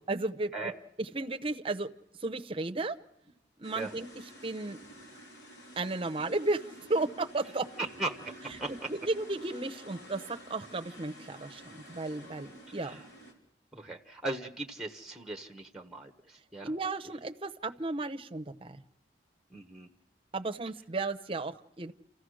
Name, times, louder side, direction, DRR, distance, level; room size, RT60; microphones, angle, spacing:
voice 1, 0.1-0.7 1.0-1.9 2.2-3.0 3.6-4.1 4.4-4.8 5.8-7.7 8.9-13.0 16.6-18.8 20.3-21.9, right 2 dB, 30° right, 7 dB, 0.8 m, -34 dB
sound 1, 3.6-13.3, right 1 dB, 85° left, 3.5 m, -50 dB
voice 2, 8.0-8.7 12.8-13.0 13.7-16.7 19.5-19.9, right 2 dB, 5° right, 4 dB, 1.0 m, -38 dB
29.0 x 15.0 x 6.4 m, 0.84 s
head